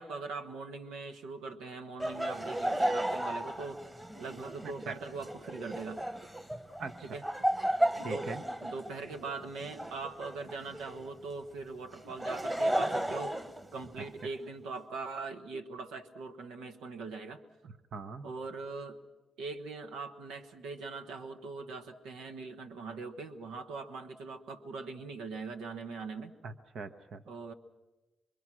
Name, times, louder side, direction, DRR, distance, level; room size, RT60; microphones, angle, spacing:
voice 1, 0.0-3.8 4.2-6.0 7.0-7.2 8.0-8.3 8.6-13.3 13.7-17.4 18.2-19.0 19.4-26.3 27.3-27.5, right 4 dB, 85° right, 6 dB, 1.2 m, -41 dB
Laughter, 2.0-11.1 11.9-14.3, right 1 dB, 15° right, 1.4 m, -34 dB
voice 2, 4.6-4.9 6.8-7.1 8.0-8.4 17.9-18.3 26.4-27.2, right 4 dB, 65° right, 8 dB, 1.0 m, -41 dB
25.5 x 23.0 x 6.1 m, 1.1 s
supercardioid pair, 55°, 0 cm